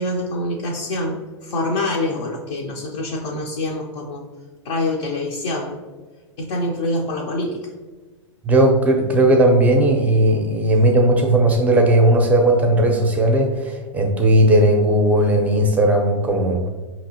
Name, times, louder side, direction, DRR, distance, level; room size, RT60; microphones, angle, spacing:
voice 1, 0.0-4.2 4.6-5.8 6.4-7.7, left 1 dB, 60° left, -2 dB, 0.7 m, -25 dB
voice 2, 8.4-16.7, right 1 dB, 10° right, 2 dB, 0.6 m, -16 dB
5.2 x 2.9 x 2.7 m, 1.3 s
hypercardioid pair, 130°, 16 cm